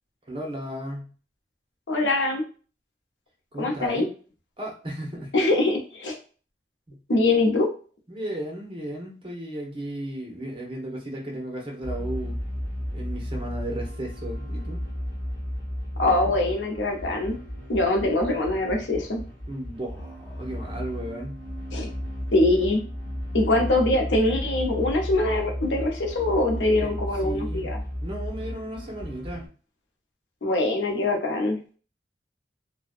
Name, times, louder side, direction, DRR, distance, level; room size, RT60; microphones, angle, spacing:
voice 1, 0.3-1.1 3.5-4.1 4.6-5.3 6.9-7.0 8.1-12.4 12.9-14.8 16.2-16.3 19.5-21.4 26.8-26.9 27.2-27.7 28.0-29.5, right 1 dB, 30° right, 0 dB, 0.7 m, -35 dB
voice 2, 1.9-2.4 3.6-4.0 5.3-6.1 7.1-7.7 16.0-17.4 17.7-19.2 21.7-21.9 22.3-22.8 23.3-27.8 30.4-31.6, left 2 dB, 85° left, 2 dB, 0.7 m, -23 dB
sound 1, 11.8-29.5, equal, 15° left, 1.0 m, -33 dB
2.5 x 2.1 x 2.4 m, 0.38 s
head